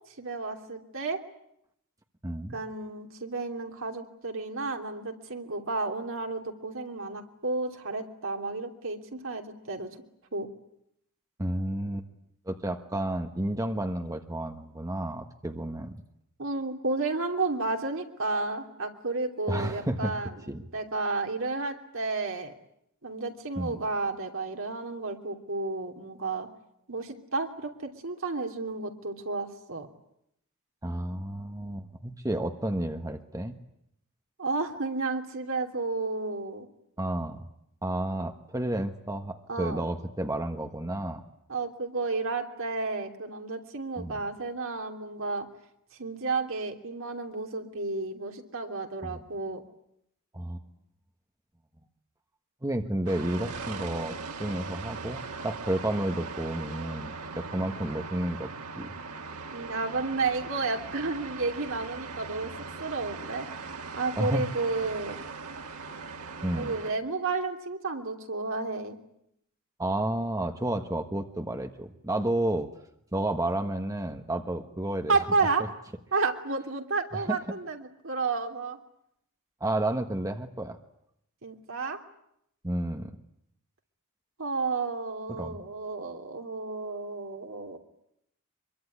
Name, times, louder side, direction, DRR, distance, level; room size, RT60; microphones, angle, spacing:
voice 1, 0.2-1.2 2.5-10.0 10.3-10.5 16.4-20.3 20.7-22.5 23.0-26.5 26.9-29.9 34.4-36.7 39.5-39.8 41.5-45.5 46.0-49.6 59.5-62.5 62.8-63.5 63.9-65.2 66.5-69.0 75.1-75.7 76.1-78.8 81.4-82.0 84.4-87.8, right 3 dB, 65° right, 3 dB, 3.2 m, -32 dB
voice 2, 2.2-2.6 11.4-12.1 12.5-16.0 19.5-20.1 20.5-20.6 23.6-23.8 30.8-33.5 37.0-37.4 37.8-41.2 44.0-44.2 49.0-49.2 50.3-50.6 52.6-58.5 58.8-58.9 64.2-64.4 66.4-66.7 69.8-72.7 73.1-75.1 77.1-77.4 79.6-80.8 82.6-83.2 85.3-85.6, right 1 dB, 15° right, 5 dB, 1.4 m, -31 dB
sound 1, 53.1-66.9, right 4 dB, 90° right, 1.9 m, -40 dB
25.0 x 23.0 x 9.9 m, 0.76 s
head